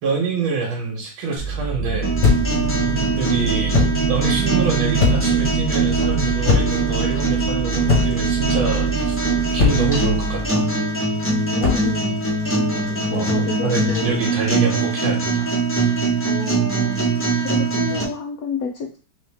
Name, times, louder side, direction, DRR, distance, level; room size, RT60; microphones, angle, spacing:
voice 1, 0.0-2.1 3.2-9.2 9.5-10.7 13.1-13.3 13.6-15.5 17.9-18.0, right 4 dB, 85° right, -1 dB, 1.8 m, -26 dB
sound 1, 1.4-10.5, right 5 dB, 55° right, 0.5 m, -25 dB
sound 2, 2.0-18.0, right 3 dB, 10° left, 0.8 m, -22 dB
sound 3, 2.2-2.6 3.7-4.0 5.0-5.4 6.5-6.9 7.9-8.3 9.6-10.0 11.6-11.9, left 5 dB, 40° left, 1.3 m, -19 dB
voice 2, 2.9-3.2 11.5-12.2 12.7-14.3 16.2-17.0 17.4-19.0, left 4 dB, 65° left, 1 dB, 0.9 m, -30 dB
3.6 x 3.4 x 3.4 m, 0.37 s
omnidirectional pair, 2.1 m